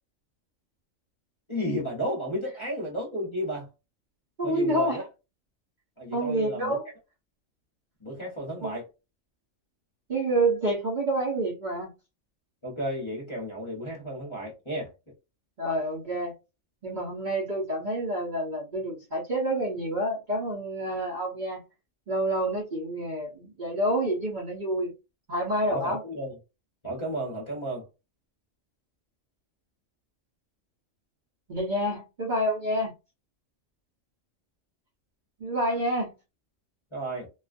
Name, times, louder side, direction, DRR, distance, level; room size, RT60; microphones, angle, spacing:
voice 1, 1.5-3.7 4.4-5.0 6.0-6.8 8.0-8.9 12.6-14.9 25.7-26.3 26.8-27.8 36.9-37.3, equal, 25° left, 0.8 m, -33 dB
voice 2, 4.4-5.0 6.1-6.9 8.6-8.8 10.1-11.9 15.6-16.3 16.8-21.6 22.1-24.9 25.3-26.0 31.5-32.9 35.4-36.1, right 1 dB, 45° right, 0.8 m, -28 dB
2.4 x 2.2 x 2.4 m
omnidirectional pair, 1.4 m